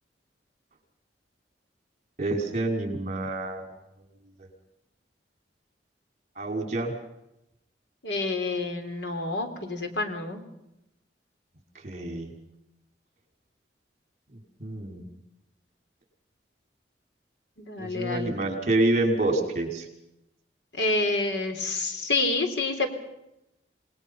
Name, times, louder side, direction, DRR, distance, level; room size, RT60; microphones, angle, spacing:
voice 1, 2.2-3.7 6.4-6.9 11.8-12.4 14.3-15.0 17.8-19.8, right 2 dB, 45° right, 2 dB, 5.5 m, -27 dB
voice 2, 8.0-10.4 17.6-18.3 20.8-22.9, left 3 dB, 85° left, 5 dB, 3.7 m, -28 dB
28.0 x 20.0 x 5.6 m, 0.86 s
head